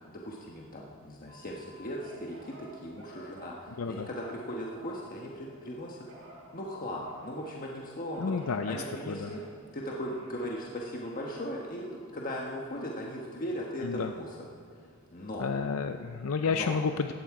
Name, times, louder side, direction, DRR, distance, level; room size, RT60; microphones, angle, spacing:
voice 1, 0.0-6.0 6.5-8.3 8.6-9.4 9.7-14.5 15.1-15.5 16.4-16.7, equal, 40° left, -2 dB, 1.3 m, -38 dB
Telephone, 1.3-5.6 6.1-9.5 9.8-12.3 12.8-13.3, right 1 dB, 75° right, 4.0 m, -53 dB
voice 2, 3.8-4.1 8.2-8.8 9.1-9.3 13.8-14.1 15.4-17.1, left 5 dB, 70° left, 7 dB, 0.5 m, -30 dB
17.0 x 11.5 x 4.8 m, 2.3 s
head